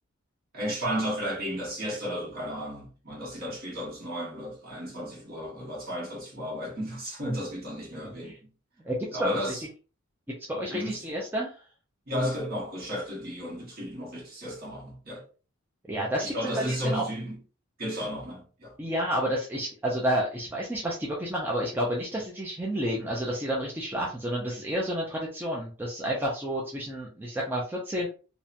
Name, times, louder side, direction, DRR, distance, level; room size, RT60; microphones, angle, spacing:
voice 1, 0.5-8.4 9.1-9.6 10.7-11.0 12.1-15.2 16.2-17.4 17.8-18.8, equal, 45° right, 1.1 m, -33 dB
voice 2, 8.8-9.6 10.5-11.6 15.8-17.0 18.8-28.1, equal, 10° right, 0.4 m, -30 dB
2.9 x 2.1 x 2.4 m
head